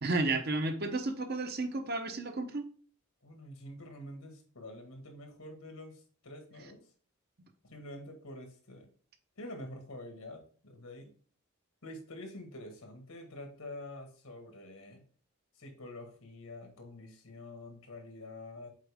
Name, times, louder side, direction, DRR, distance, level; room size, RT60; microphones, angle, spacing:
voice 1, 0.0-2.6, right 2 dB, 45° right, 7 dB, 0.8 m, -32 dB
voice 2, 3.2-6.8 7.6-8.9 9.4-11.1 11.8-15.0 15.6-18.7, left 1 dB, 75° left, 4 dB, 1.8 m, -47 dB
7.4 x 4.5 x 3.5 m, 0.43 s
head